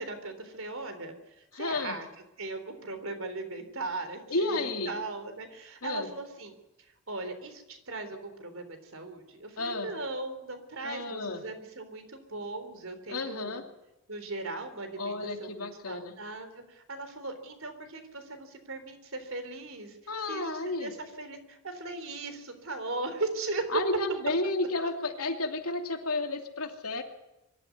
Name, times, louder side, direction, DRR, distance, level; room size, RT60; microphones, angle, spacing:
voice 1, 0.0-2.1 2.4-6.5 7.1-13.6 14.1-20.0 20.3-23.7 24.8-24.9, right 2 dB, 65° right, 9 dB, 3.6 m, -38 dB
voice 2, 1.5-2.0 4.3-4.9 5.8-6.1 9.6-9.9 10.8-11.4 13.1-13.6 15.0-16.1 20.1-20.9 23.7-27.0, left 2 dB, 85° left, 4 dB, 2.8 m, -32 dB
23.0 x 13.0 x 9.6 m, 0.95 s
head